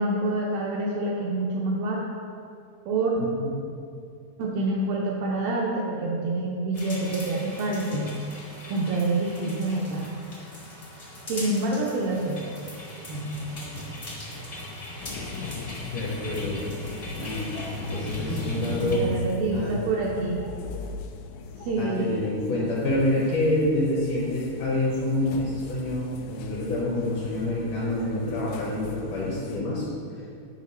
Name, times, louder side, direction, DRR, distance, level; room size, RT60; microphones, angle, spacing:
voice 1, 0.0-2.1 2.9-3.2 4.4-8.1 8.7-10.1 11.3-12.4 13.1-13.4 18.9-20.4 21.6-22.3, right 2 dB, 80° right, -2 dB, 2.1 m, -27 dB
sound 1, 6.7-19.0, equal, 40° left, 0.8 m, -38 dB
sound 2, 15.0-29.6, left 4 dB, 85° left, 2.7 m, -40 dB
voice 2, 15.9-16.6 17.2-17.4 17.9-19.1 19.5-19.7 21.8-29.9, left 1 dB, 70° left, -5 dB, 2.0 m, -27 dB
10.0 x 5.7 x 4.2 m, 2.4 s
omnidirectional pair, 4.8 m